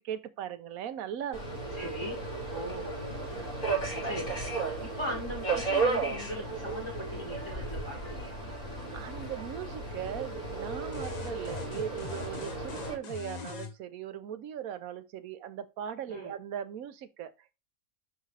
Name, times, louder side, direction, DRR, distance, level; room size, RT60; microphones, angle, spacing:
voice 1, 0.1-1.6 8.9-17.5, right 9 dB, 75° right, 1.2 m, -39 dB
Subway metro underground, 1.3-13.0, right 4 dB, 85° left, 5.3 m, -34 dB
voice 2, 1.8-2.2 2.5-3.3 4.0-4.3 4.8-8.3 16.1-16.3, equal, 20° left, 2.1 m, -39 dB
sound 1, 10.9-13.7, left 7 dB, 40° left, 0.7 m, -41 dB
11.0 x 3.7 x 3.3 m
omnidirectional pair, 1.5 m